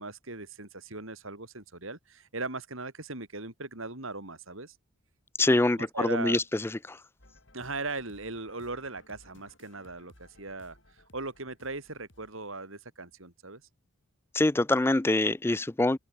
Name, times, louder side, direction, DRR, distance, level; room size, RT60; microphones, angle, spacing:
voice 1, 0.0-4.8 5.8-6.4 7.5-13.6, right 3 dB, 65° right, 4.1 m, -39 dB
voice 2, 5.4-6.6 6.9-7.0 14.3-16.0, left 2 dB, 10° left, 0.3 m, -25 dB
sound 1, 7.2-12.3, left 1 dB, 55° left, 5.0 m, -59 dB
open air
head